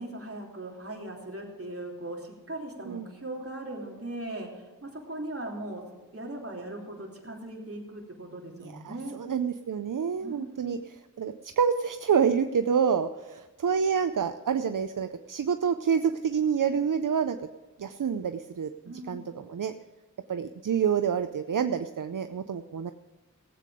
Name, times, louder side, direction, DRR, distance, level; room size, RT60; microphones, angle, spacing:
voice 1, 0.0-5.8 6.1-9.1 10.2-10.8 18.8-19.3, right 1 dB, 45° right, -1 dB, 3.2 m, -39 dB
voice 2, 8.6-17.4 17.8-18.7 19.1-19.7 20.3-22.9, right 7 dB, 75° right, 9 dB, 0.6 m, -28 dB
17.5 x 8.5 x 5.0 m, 1.2 s
wide cardioid pair, 60°, 32 cm